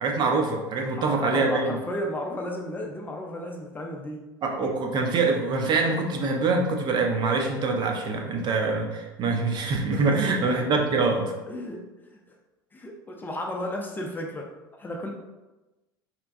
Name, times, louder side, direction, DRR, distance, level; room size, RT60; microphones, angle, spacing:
voice 1, 0.0-1.8 4.4-11.3, right 3 dB, 35° right, 2 dB, 0.6 m, -24 dB
voice 2, 0.8-4.2 9.9-10.7 11.5-11.9 12.1-12.2 12.7-14.5 14.8-15.1, left 1 dB, 15° left, 0 dB, 0.5 m, -34 dB
4.2 x 2.2 x 2.5 m, 1.1 s
figure-of-eight pair, 75°, 12 cm